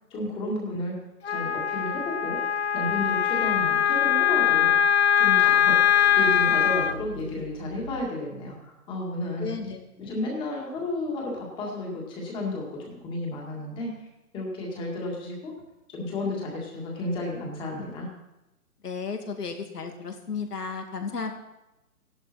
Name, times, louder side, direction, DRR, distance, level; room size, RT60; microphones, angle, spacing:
voice 1, 0.1-0.9 1.3-2.4 2.7-4.7 5.1-9.5 10.0-13.9 14.3-15.5 15.9-18.1, left 2 dB, 10° left, -1 dB, 2.0 m, -32 dB
Wind instrument woodwind instrument, 1.2-6.9, left 9 dB, 45° left, 0.6 m, -22 dB
sound 1, 1.2-8.0, right 3 dB, 60° right, 2.3 m, -46 dB
voice 2, 9.4-10.1 18.8-21.3, left 5 dB, 80° left, 4 dB, 2.5 m, -34 dB
15.0 x 11.5 x 4.3 m, 0.97 s
hypercardioid pair, 160°, 46 cm